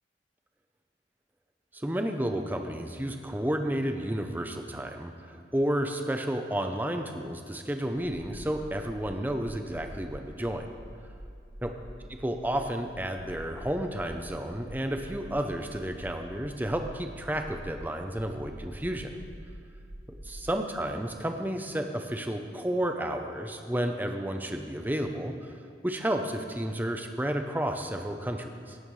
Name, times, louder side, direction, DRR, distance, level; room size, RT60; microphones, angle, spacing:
voice 1, 1.7-10.7 11.6-11.7 12.2-19.2 20.1-25.5 25.8-28.8, right 1 dB, 10° right, 5 dB, 0.6 m, -31 dB
sound 1, 9.7-20.5, equal, 45° right, 2.3 m, -46 dB
18.0 x 9.1 x 3.2 m, 2.4 s
head